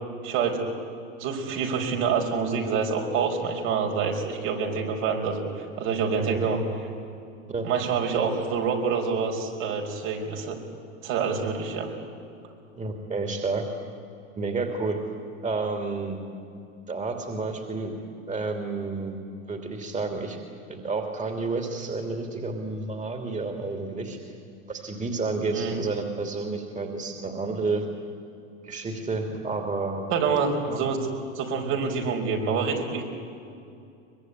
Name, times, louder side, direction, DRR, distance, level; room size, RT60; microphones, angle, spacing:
voice 1, 0.2-0.7 1.2-6.6 7.6-10.6 11.0-11.9 25.5-25.7 30.1-31.0 31.4-33.0, right 5 dB, 60° right, 1 dB, 5.2 m, -27 dB
voice 2, 12.8-13.6 14.3-15.0 15.4-16.2 16.9-18.0 18.3-19.1 19.5-20.4 20.7-24.2 24.7-27.8 28.6-30.0 30.6-30.8, right 3 dB, 20° right, 4 dB, 3.0 m, -30 dB
23.5 x 21.5 x 9.7 m, 2.5 s
hypercardioid pair, 105°, 39 cm